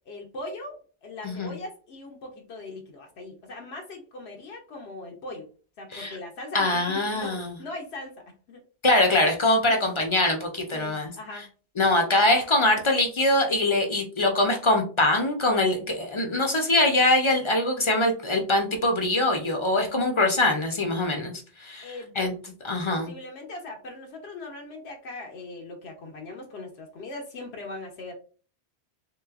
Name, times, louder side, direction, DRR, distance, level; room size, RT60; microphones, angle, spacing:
voice 1, 0.1-5.5 5.8-8.2 8.5-8.6 9.7-9.8 10.7-11.5 21.8-22.1 22.9-28.1, left 2 dB, 85° left, 2 dB, 1.0 m, -40 dB
voice 2, 6.5-7.6 8.8-11.4 11.8-22.3 22.6-23.1, left 2 dB, 40° left, 3 dB, 0.5 m, -23 dB
3.2 x 3.0 x 2.3 m, 0.38 s
omnidirectional pair, 1.1 m